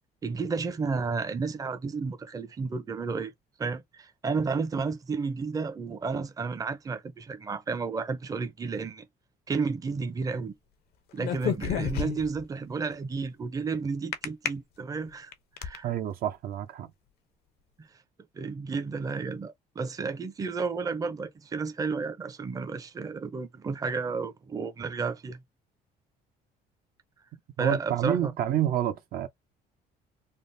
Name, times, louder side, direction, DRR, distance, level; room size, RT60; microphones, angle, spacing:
voice 1, 0.2-3.3 3.6-9.0 9.5-10.5 11.1-15.3 15.6-15.9 18.3-25.4 27.6-28.3, right 4 dB, 20° right, 0.5 m, -32 dB
sound 1, 11.2-12.4 14.1-14.5 15.1-15.8, left 9 dB, 70° left, 0.6 m, -29 dB
voice 2, 15.8-16.9 27.6-29.3, right 11 dB, 60° right, 0.6 m, -28 dB
3.5 x 2.0 x 2.5 m
cardioid pair, 110°, 17 cm